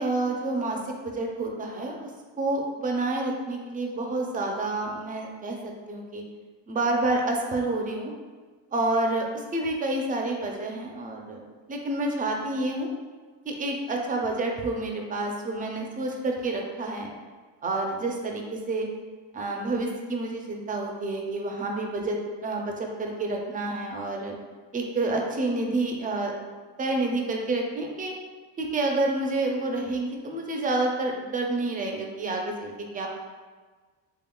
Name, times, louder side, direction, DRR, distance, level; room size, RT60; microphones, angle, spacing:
voice 1, 0.0-2.1 2.4-6.2 6.7-8.1 8.7-11.4 11.7-12.9 13.5-17.1 17.6-18.9 19.3-24.4 24.7-26.3 26.8-28.1 28.6-33.1, right 2 dB, 20° right, 1 dB, 0.3 m, -29 dB
3.7 x 3.4 x 2.2 m, 1.4 s
cardioid pair, 125°, 44 cm